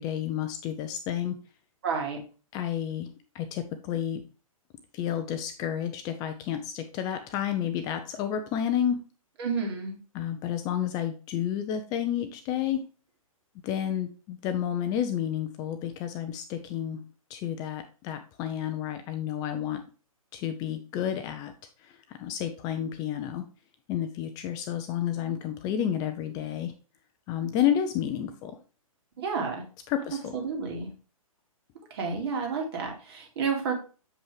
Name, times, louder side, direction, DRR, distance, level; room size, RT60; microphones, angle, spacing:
voice 1, 0.0-1.4 2.5-4.2 4.9-9.0 10.1-12.8 13.6-17.0 17.3-19.8 20.3-21.5 21.8-23.4 23.9-26.7 27.3-28.6 29.9-30.4, left 10 dB, 20° left, 7 dB, 0.5 m, -30 dB
voice 2, 1.8-2.2 9.4-10.0 29.2-29.6 30.3-30.9 31.9-33.7, right 5 dB, 45° right, 1 dB, 2.5 m, -30 dB
7.4 x 5.2 x 3.3 m, 0.35 s
figure-of-eight pair, 125°, 18 cm